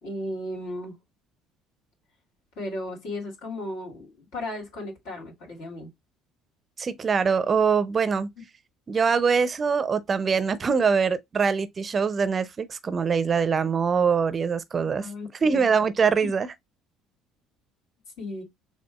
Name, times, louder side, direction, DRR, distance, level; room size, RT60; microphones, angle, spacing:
voice 1, 0.0-0.9 2.6-5.9 14.8-15.7 18.2-18.4, left 1 dB, 65° left, 2.4 m, -35 dB
voice 2, 6.8-8.3 8.9-15.1 15.4-16.5, right 5 dB, 35° right, 0.6 m, -23 dB
6.8 x 2.4 x 2.3 m
hypercardioid pair, 60°, 0 cm